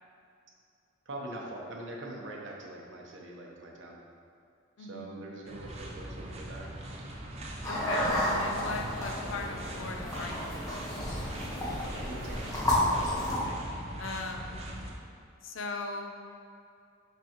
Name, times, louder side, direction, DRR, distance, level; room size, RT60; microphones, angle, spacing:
voice 1, 1.1-4.0 4.8-6.7 12.0-12.5, right 1 dB, 65° right, -1 dB, 0.9 m, -43 dB
voice 2, 4.8-5.3 7.7-10.8 13.2-13.6 14.0-14.6 15.4-16.1, left 3 dB, 75° left, 3 dB, 0.6 m, -39 dB
sound 1, 5.5-14.9, right 1 dB, 30° right, 0.6 m, -41 dB
sound 2, 7.6-13.4, left 1 dB, 15° left, 1.2 m, -31 dB
6.0 x 5.5 x 3.0 m, 2.4 s
head